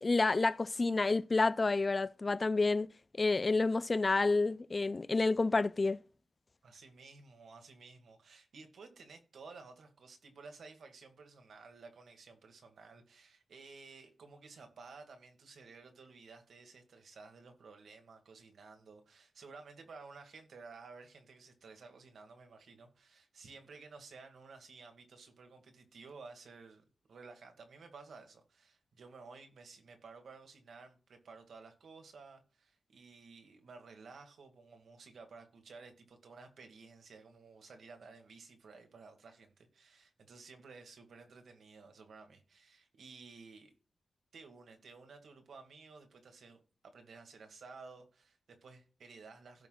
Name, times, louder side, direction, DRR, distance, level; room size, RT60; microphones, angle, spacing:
voice 1, 0.0-2.9 3.2-6.0, left 3 dB, 30° left, 0.3 m, -29 dB
voice 2, 6.6-43.7 44.3-49.7, right 4 dB, 85° right, 2.0 m, -54 dB
16.5 x 5.9 x 2.4 m
wide cardioid pair, 145°, 0 cm